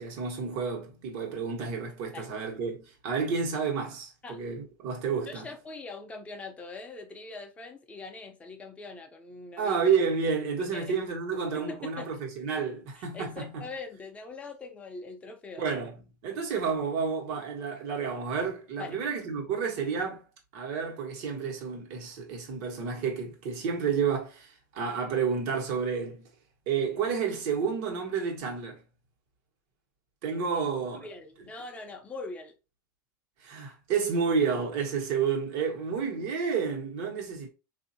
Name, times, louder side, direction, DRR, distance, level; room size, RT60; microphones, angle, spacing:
voice 1, 0.0-5.5 9.6-13.7 15.6-15.9 16.2-20.2 20.5-26.3 26.7-28.8 30.2-31.1 33.4-37.5, right 6 dB, 55° right, 1.4 m, -30 dB
voice 2, 5.3-9.8 10.6-10.9 11.5-12.2 13.0-15.7 18.8-19.0 30.9-32.5, left 3 dB, 15° left, 0.7 m, -42 dB
4.0 x 2.7 x 2.7 m
supercardioid pair, 140°, 10 cm